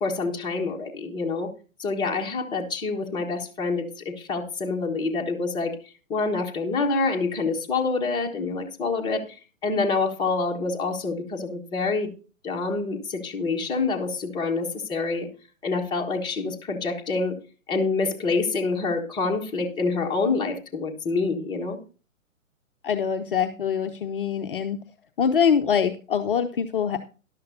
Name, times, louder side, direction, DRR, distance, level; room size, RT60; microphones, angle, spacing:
voice 1, 0.0-1.5 1.8-5.7 6.1-9.4 9.6-12.1 12.4-15.3 15.6-17.4 17.7-21.8, left 4 dB, 10° left, 1 dB, 1.4 m, -27 dB
voice 2, 22.8-24.8 25.2-27.0, left 7 dB, 40° left, 7 dB, 0.7 m, -24 dB
13.0 x 11.5 x 2.7 m, 0.35 s
figure-of-eight pair, 125°, 42 cm